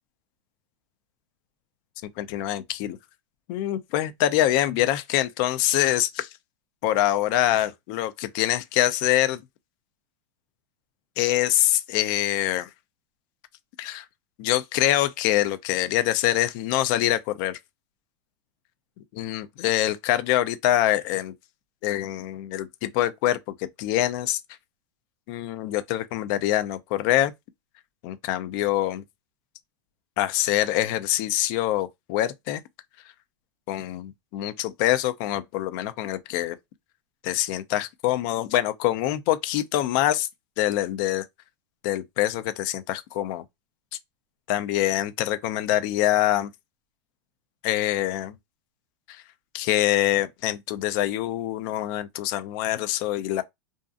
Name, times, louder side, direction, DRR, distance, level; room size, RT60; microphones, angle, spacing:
voice 1, 2.2-3.0 3.5-6.3 6.8-9.4 11.2-12.7 13.8-14.1 14.4-17.6 19.1-21.3 21.8-24.4 25.3-27.3 28.0-29.0 30.2-32.6 33.7-36.6 37.2-40.3 40.6-41.3 41.8-43.4 44.5-46.5 47.6-48.4 49.1-49.2 49.5-53.4, left 13 dB, 45° left, 0.5 m, -25 dB
2.5 x 2.5 x 2.4 m
supercardioid pair, 145°, 15 cm